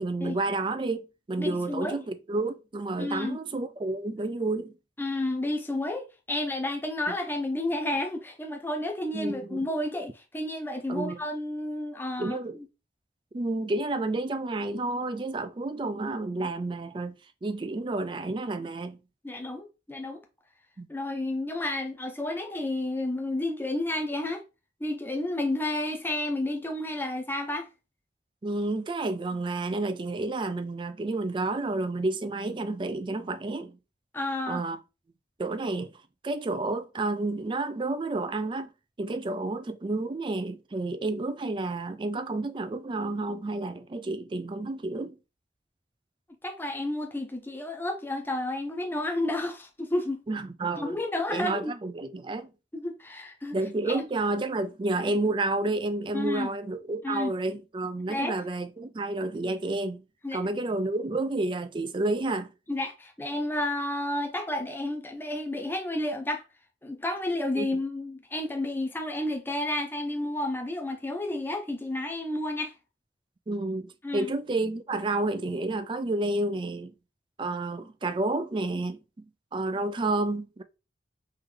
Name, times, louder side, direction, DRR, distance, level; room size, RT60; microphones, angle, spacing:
voice 1, 0.0-4.7 9.1-9.6 10.9-11.2 12.2-12.6 13.3-17.1 17.4-19.0 20.8-20.9 28.4-33.8 34.5-34.8 35.4-35.9 36.2-38.7 39.0-45.2 50.3-51.0 51.3-52.5 53.5-60.0 60.3-62.5 67.6-67.7 73.5-76.9 77.4-79.0 79.5-80.6, right 2 dB, 25° right, 0.3 m, -30 dB
voice 2, 1.4-2.0 3.0-3.4 5.0-12.4 19.2-20.2 20.9-24.4 24.8-27.7 34.1-34.6 46.4-50.2 50.8-51.7 52.7-53.6 53.9-54.0 56.1-56.5 57.0-57.3 58.1-58.3 60.2-60.4 62.7-66.4 66.8-72.8 74.0-74.3, left 1 dB, 10° left, 0.7 m, -31 dB
3.7 x 3.2 x 3.2 m
head